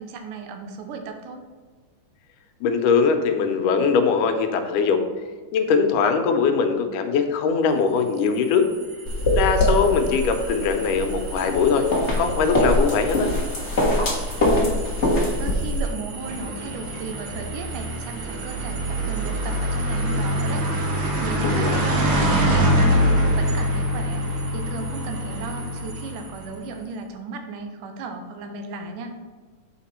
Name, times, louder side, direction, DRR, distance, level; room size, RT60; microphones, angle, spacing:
voice 1, 0.0-1.4 14.5-14.9 15.4-29.2, right 4 dB, 85° right, 5 dB, 2.4 m, -35 dB
voice 2, 2.6-5.0 5.5-8.7 9.3-11.8 12.1-13.3 21.4-21.8, left 5 dB, 85° left, 6 dB, 2.3 m, -21 dB
sound 1, 8.2-26.7, equal, 65° right, 1.3 m, -26 dB
sound 2, 9.1-15.8, left 1 dB, 50° left, 0.8 m, -23 dB
7.4 x 5.1 x 4.3 m, 1.5 s
omnidirectional pair, 3.6 m